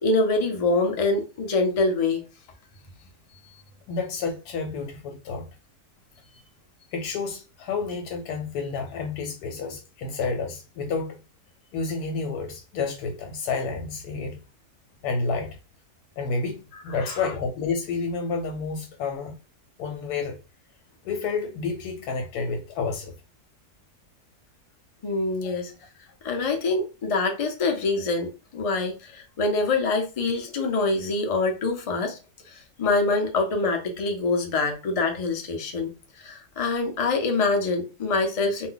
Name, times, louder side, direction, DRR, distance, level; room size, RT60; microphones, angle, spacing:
voice 1, 0.0-2.2 17.0-17.2 25.0-25.7 26.2-32.2 32.5-38.7, left 3 dB, 50° left, 0.4 m, -25 dB
voice 2, 3.9-5.5 6.9-11.2 11.7-14.4 15.0-15.6 16.2-16.6 16.8-19.4 19.8-20.4 21.0-23.2 25.4-25.5, left 4 dB, 90° left, 1.1 m, -30 dB
2.5 x 2.1 x 3.8 m
omnidirectional pair, 1.6 m